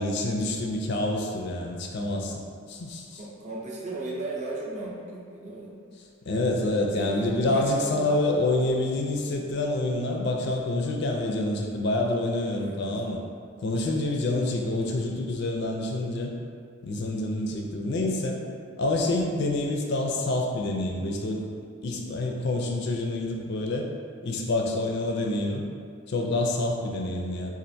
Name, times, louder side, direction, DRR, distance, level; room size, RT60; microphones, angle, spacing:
voice 1, 0.0-2.4 2.7-3.2 6.3-13.2 13.6-16.3 16.8-18.4 18.8-21.4 21.8-23.8 24.2-25.6 26.1-27.5, left 2 dB, 50° left, 1 dB, 0.4 m, -27 dB
voice 2, 3.2-5.7 6.9-8.1 12.6-12.9, right 2 dB, 35° right, -5 dB, 0.6 m, -36 dB
4.3 x 2.4 x 2.6 m, 2.3 s
head